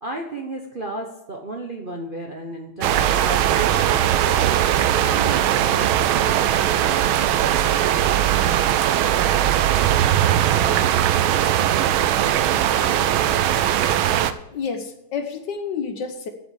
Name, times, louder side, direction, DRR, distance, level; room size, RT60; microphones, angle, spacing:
voice 1, 0.0-4.6 5.0-6.3, right 2 dB, 40° right, 1 dB, 0.8 m, -33 dB
sound 1, 2.8-14.3, right 11 dB, 80° right, 1.4 m, -19 dB
voice 2, 14.5-16.3, left 6 dB, 60° left, 6 dB, 1.5 m, -29 dB
8.8 x 7.7 x 8.6 m, 0.86 s
omnidirectional pair, 2.4 m